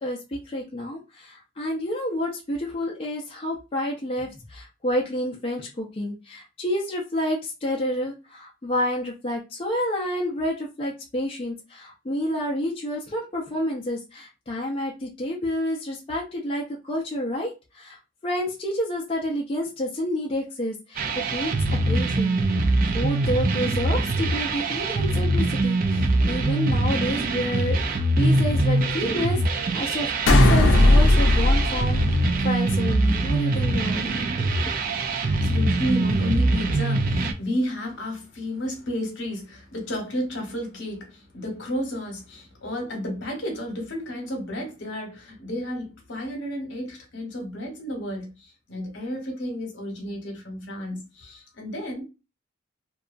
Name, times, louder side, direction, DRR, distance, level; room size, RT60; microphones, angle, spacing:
voice 1, 0.0-21.5 21.8-22.4 22.9-32.0 32.4-34.7, left 1 dB, 30° left, 0.5 m, -29 dB
sound 1, 21.0-37.3, right 2 dB, 45° right, 0.4 m, -23 dB
sound 2, 30.3-32.8, left 1 dB, 85° left, 0.5 m, -18 dB
voice 2, 35.2-52.0, left 1 dB, 70° left, 0.9 m, -32 dB
2.7 x 2.3 x 2.4 m
head